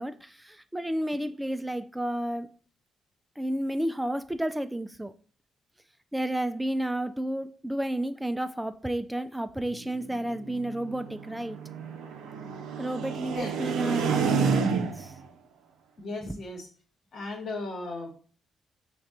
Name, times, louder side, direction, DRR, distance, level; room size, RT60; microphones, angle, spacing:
voice 1, 0.0-2.5 3.4-5.1 6.1-11.6 12.8-15.2 16.2-16.4, right 1 dB, 10° right, 0.3 m, -31 dB
sound 1, 9.7-15.2, right 6 dB, 75° right, 0.5 m, -30 dB
voice 2, 16.0-16.7 17.1-18.1, left 2 dB, 60° left, 1.2 m, -36 dB
5.2 x 2.4 x 3.6 m
hypercardioid pair, 45°, 0 cm